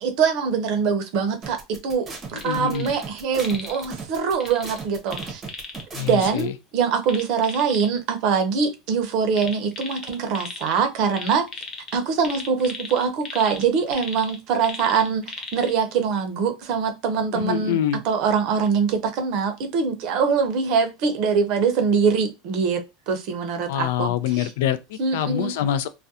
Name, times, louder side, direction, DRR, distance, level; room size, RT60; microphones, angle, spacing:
voice 1, 0.0-5.4 6.0-11.5 11.9-15.2 15.5-17.8 18.0-24.5 25.0-25.5, right 6 dB, 55° right, 0.6 m, -23 dB
sound 1, 1.4-6.4, right 4 dB, 20° right, 0.7 m, -36 dB
voice 2, 2.3-2.9 5.9-6.5 17.3-18.0 23.7-25.9, left 10 dB, 75° left, 0.3 m, -25 dB
sound 2, 2.3-3.0 3.3-3.9 4.4-5.8 7.0-7.9 9.3-10.8 11.1-15.7 16.2-16.3, left 4 dB, 30° left, 0.5 m, -37 dB
2.4 x 2.1 x 2.7 m
supercardioid pair, 135°, 0 cm